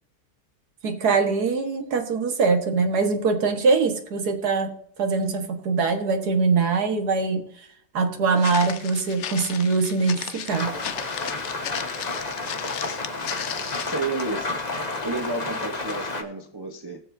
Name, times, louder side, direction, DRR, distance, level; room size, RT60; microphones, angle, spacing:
voice 1, 0.8-4.7 5.0-7.4 7.9-10.8, right 4 dB, 85° right, 5 dB, 1.9 m, -23 dB
Walk footsteps, 8.4-14.1, left 9 dB, 55° left, 0.9 m, -35 dB
Rain, 10.5-16.2, left 3 dB, 30° left, 1.2 m, -31 dB
voice 2, 13.9-14.6 15.0-17.0, right 3 dB, 20° right, 4 dB, 0.8 m, -31 dB
19.0 x 7.5 x 2.7 m, 0.64 s
omnidirectional pair, 1.6 m